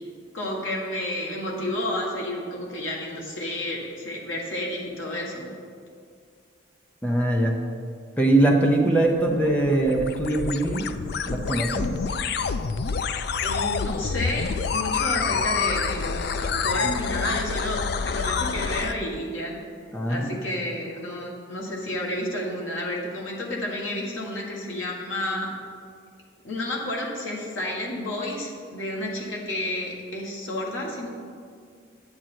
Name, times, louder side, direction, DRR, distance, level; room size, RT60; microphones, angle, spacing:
voice 1, 0.3-5.5 13.4-19.6 20.1-25.5 26.4-31.1, left 1 dB, 80° left, -2 dB, 1.7 m, -31 dB
voice 2, 7.0-7.6 8.2-10.9 11.3-11.9 19.9-20.3, right 1 dB, 5° left, 0 dB, 0.7 m, -22 dB
sound 1, 9.2-18.9, left 5 dB, 55° left, 0.3 m, -27 dB
9.7 x 7.7 x 4.5 m, 2.2 s
head